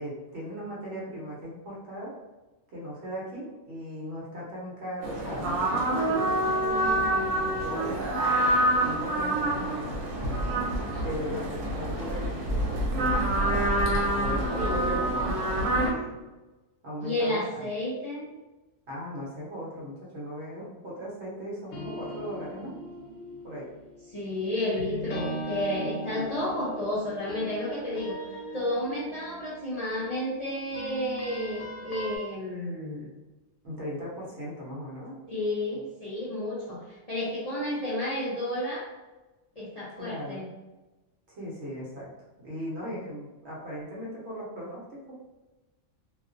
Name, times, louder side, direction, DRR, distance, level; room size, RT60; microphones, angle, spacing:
voice 1, 0.0-2.1 2.7-8.0 8.8-9.9 11.0-13.7 14.1-15.4 15.8-16.2 16.8-17.4 18.9-22.9 23.4-23.7 33.6-35.2 40.0-40.4 41.3-42.1 42.4-45.2, equal, 60° right, -5 dB, 1.0 m, -38 dB
sound 1, 5.0-15.9, right 1 dB, 85° right, 1.0 m, -27 dB
voice 2, 14.6-15.4 17.0-18.3 24.1-28.2 28.5-33.1 35.3-38.9 39.6-40.4, left 1 dB, 50° left, -9 dB, 0.4 m, -31 dB
sound 2, 21.7-32.2, equal, 75° left, 0.9 m, -39 dB
2.4 x 2.2 x 2.5 m, 1.1 s
omnidirectional pair, 1.3 m